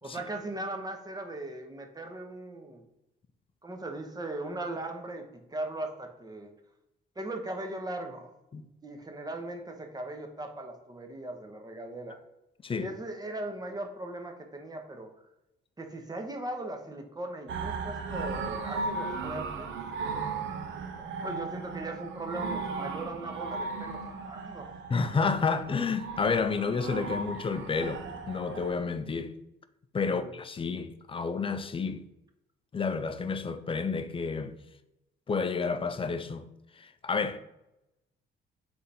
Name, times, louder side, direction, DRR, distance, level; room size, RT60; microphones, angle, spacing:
voice 1, 0.0-2.8 3.6-6.5 7.2-8.3 8.8-12.2 12.8-15.1 15.8-19.7 20.9-24.7 30.2-30.3, right 2 dB, 20° right, 0.9 m, -38 dB
sound 1, 17.5-28.8, right 4 dB, 70° right, 0.6 m, -36 dB
voice 2, 24.9-29.3 29.9-32.0 32.7-34.5 35.3-36.4 36.8-37.4, left 5 dB, 25° left, 0.4 m, -30 dB
3.7 x 3.4 x 4.1 m
cardioid pair, 90°, 20 cm